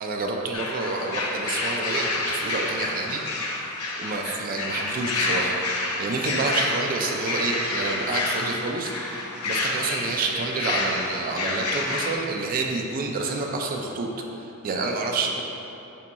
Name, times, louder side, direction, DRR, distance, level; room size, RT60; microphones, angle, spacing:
voice 1, 0.0-3.2 4.0-5.6 6.0-14.1 14.4-15.4, right 3 dB, 40° right, 1 dB, 0.3 m, -28 dB
sound 1, 0.5-12.1, left 2 dB, 70° left, 0.6 m, -28 dB
5.5 x 3.9 x 2.3 m, 2.9 s
head